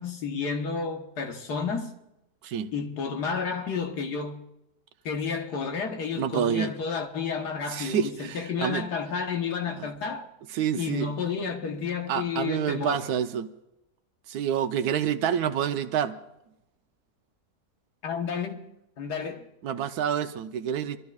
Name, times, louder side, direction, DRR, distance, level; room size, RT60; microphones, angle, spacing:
voice 1, 0.0-1.9 2.7-4.4 5.1-10.3 10.7-13.0 18.0-18.7 19.0-19.4, left 5 dB, 80° left, 1.8 m, -31 dB
voice 2, 6.2-6.7 7.7-8.9 9.8-9.9 10.5-11.1 12.1-13.5 14.3-16.2 19.6-21.0, right 8 dB, 75° right, 1.2 m, -28 dB
26.5 x 13.5 x 2.4 m
omnidirectional pair, 1.7 m